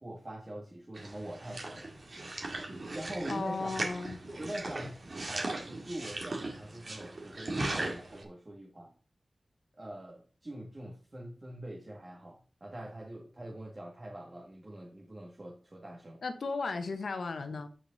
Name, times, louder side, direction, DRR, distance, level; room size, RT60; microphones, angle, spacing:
voice 1, 0.0-1.9 2.9-3.7 4.3-8.9 9.8-16.2, right 1 dB, 40° right, -1 dB, 1.6 m, -43 dB
sound 1, 0.9-8.2, right 2 dB, 65° right, 2.0 m, -38 dB
voice 2, 3.3-4.2 16.2-17.7, left 4 dB, 80° left, 8 dB, 1.0 m, -35 dB
9.0 x 4.9 x 4.0 m, 0.40 s
cardioid pair, 45°, 0 cm